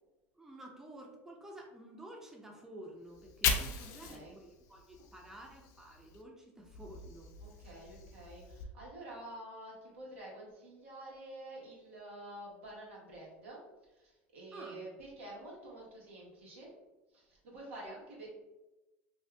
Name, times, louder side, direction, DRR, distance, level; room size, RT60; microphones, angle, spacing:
voice 1, 0.3-7.3 14.5-14.8 17.8-18.0, right 1 dB, 5° right, 0 dB, 0.6 m, -51 dB
Fire, 3.1-6.2 6.6-8.6, left 6 dB, 55° left, 0.5 m, -39 dB
voice 2, 3.9-4.4 5.2-5.3 7.4-16.7 17.1-18.3, right 1 dB, 85° right, -5 dB, 1.3 m, -49 dB
2.7 x 2.4 x 3.3 m, 1.0 s
hypercardioid pair, 90°, 7 cm